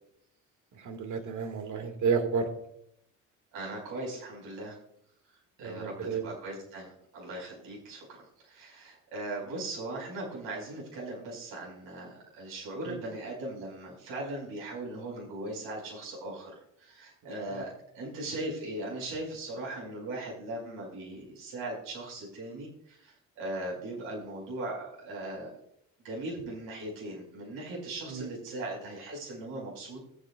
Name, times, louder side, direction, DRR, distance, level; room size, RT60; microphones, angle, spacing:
voice 1, 0.7-2.5 5.6-6.3 12.9-13.0 17.5-17.6 28.1-28.3, right 5 dB, 60° right, 5 dB, 2.0 m, -31 dB
voice 2, 3.5-4.8 5.6-8.1 8.4-17.7 17.9-25.5 26.0-30.0, right 2 dB, 85° right, -2 dB, 5.2 m, -39 dB
20.5 x 8.4 x 2.4 m, 0.73 s
supercardioid pair, 75°, 34 cm